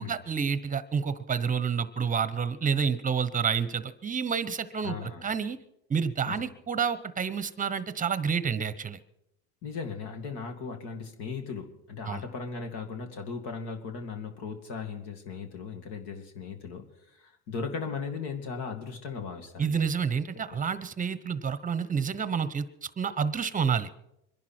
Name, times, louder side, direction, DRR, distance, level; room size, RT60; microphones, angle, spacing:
voice 1, 0.0-5.6 5.9-9.0 12.1-12.2 19.6-22.6 23.0-23.9, right 6 dB, 20° right, 14 dB, 0.9 m, -29 dB
voice 2, 4.8-5.2 6.3-6.4 9.6-19.8 20.5-20.6, left 5 dB, 65° left, 4 dB, 2.5 m, -37 dB
25.5 x 11.0 x 4.5 m, 0.84 s
supercardioid pair, 110°, 44 cm